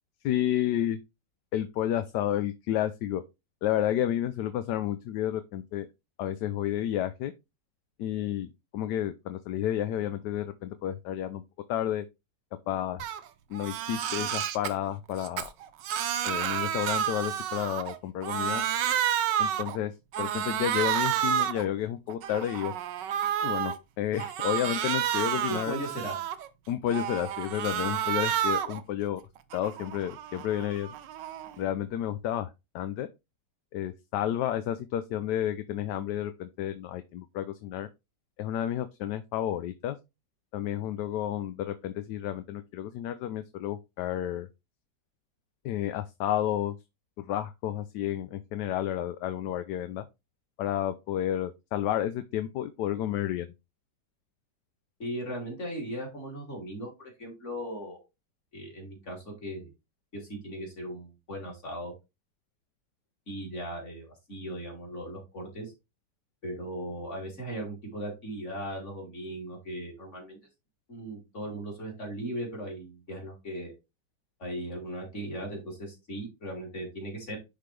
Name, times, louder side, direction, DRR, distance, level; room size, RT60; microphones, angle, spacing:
voice 1, 0.2-1.0 1.5-3.2 3.6-5.9 6.2-7.3 8.0-11.4 11.7-12.0 12.7-13.1 13.5-15.5 16.2-18.6 19.4-22.7 23.4-25.8 26.7-29.2 29.5-30.9 31.6-32.5 32.7-33.1 33.7-37.9 38.4-40.0 40.5-44.5 45.6-46.8 47.2-50.0 50.6-53.5, left 11 dB, 75° left, 1.1 m, -31 dB
Crying sobbing, 13.0-13.2 13.5-14.7 15.2-18.0 18.2-19.8 20.1-21.7 22.1-23.8 24.2-26.5 26.9-28.8 29.2-31.6, right 10 dB, 80° right, 1.3 m, -30 dB
voice 2, 25.5-26.4 55.0-58.0 58.5-59.7 60.2-61.9 63.3-65.7 66.4-70.4 70.9-73.7 74.4-77.4, right 1 dB, 40° left, 3.2 m, -38 dB
10.5 x 3.8 x 3.2 m
omnidirectional pair, 1.9 m